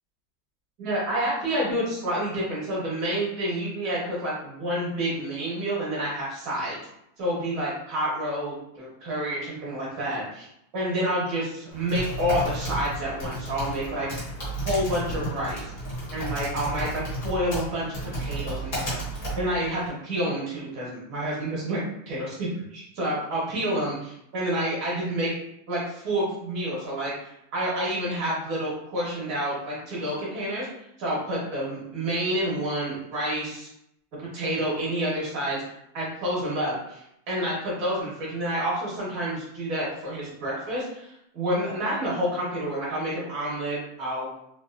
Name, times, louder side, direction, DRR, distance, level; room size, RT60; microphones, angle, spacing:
voice 1, 0.8-6.8 7.2-10.5 10.7-14.2 14.6-15.7 16.1-25.4 25.7-30.7 31.0-33.7 34.2-35.6 35.9-44.3, right 1 dB, 35° right, -6 dB, 1.1 m, -29 dB
Typing, 11.7-19.9, right 1 dB, 50° left, 1.2 m, -33 dB
2.8 x 2.2 x 2.4 m, 0.77 s
supercardioid pair, 170°, 0 cm